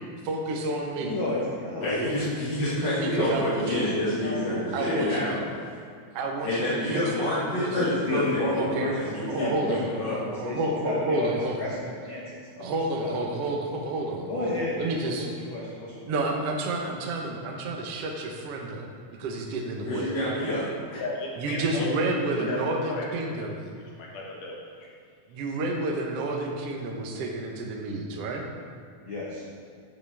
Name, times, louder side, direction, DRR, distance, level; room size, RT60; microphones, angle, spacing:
voice 1, 0.2-1.1 3.0-3.9 4.7-5.4 6.1-7.8 8.5-11.6 12.6-15.3 16.1-20.1 21.4-23.6 25.3-28.4, right 2 dB, 80° right, 1 dB, 1.3 m, -30 dB
voice 2, 1.0-2.2 3.0-3.2 4.2-5.5 7.7-10.6 10.8-11.3 11.6-12.2 12.5-12.7 13.0-13.4 14.3-15.9 29.0-29.4, left 2 dB, 80° left, -6 dB, 1.1 m, -31 dB
voice 3, 1.8-5.4 6.4-10.2 19.9-21.0, left 1 dB, 45° left, -10 dB, 1.5 m, -28 dB
voice 4, 21.0-21.9 22.4-23.5 23.7-24.9, left 2 dB, 65° left, -3 dB, 2.7 m, -35 dB
10.5 x 7.7 x 3.5 m, 2.2 s
omnidirectional pair, 4.2 m